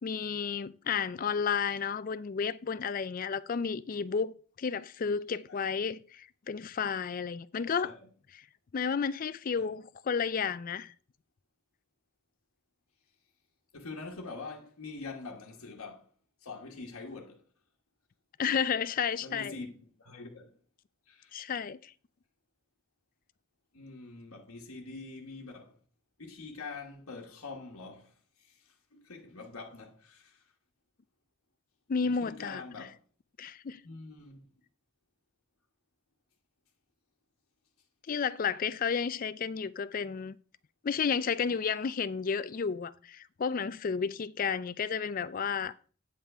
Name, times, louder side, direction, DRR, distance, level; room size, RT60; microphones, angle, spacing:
voice 1, 0.0-7.9 8.7-10.9 18.4-19.5 21.3-21.9 31.9-32.6 33.4-33.8 38.1-40.4 40.8-45.7, left 6 dB, 40° left, 0.4 m, -32 dB
voice 2, 13.7-16.1 16.4-17.4 19.2-19.7 20.0-20.6 21.1-21.3 23.7-25.8 26.2-30.5 32.0-32.9 33.8-34.5 41.5-41.6, left 3 dB, 85° left, 1.2 m, -45 dB
9.0 x 5.6 x 4.7 m
head